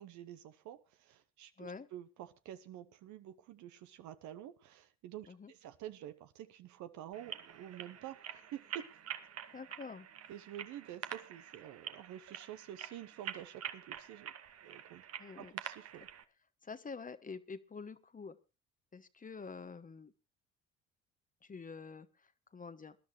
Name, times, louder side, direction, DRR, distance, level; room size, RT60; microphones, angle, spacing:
voice 1, 0.0-8.9 10.3-14.3 14.6-15.1 15.4-16.1, right 11 dB, 75° right, 0.9 m, -49 dB
sound 1, 7.1-16.2, right 9 dB, 55° right, 1.2 m, -47 dB
voice 2, 9.5-10.1 15.2-15.5 16.6-18.4 18.9-20.1 21.4-22.1 22.5-23.0, left 5 dB, 25° left, 1.0 m, -47 dB
21.0 x 10.5 x 3.2 m
supercardioid pair, 75°, 30 cm